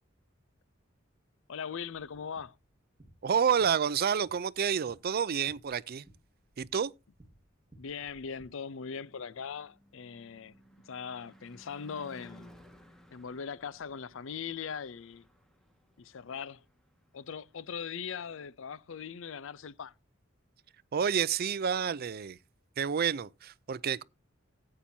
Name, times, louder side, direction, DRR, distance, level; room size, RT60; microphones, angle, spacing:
voice 1, 1.5-2.5 7.8-10.5 10.9-12.5 13.1-15.3 16.0-16.6 17.1-19.9, left 6 dB, 70° left, 0.5 m, -40 dB
sound 1, 2.0-8.5, right 1 dB, 25° right, 1.9 m, -61 dB
voice 2, 3.2-6.1 6.6-6.9 20.9-22.4 22.8-24.0, right 7 dB, 50° right, 0.5 m, -29 dB
Car passing by / Truck / Engine, 8.9-18.4, equal, 5° left, 1.6 m, -59 dB
14.5 x 8.8 x 2.7 m
head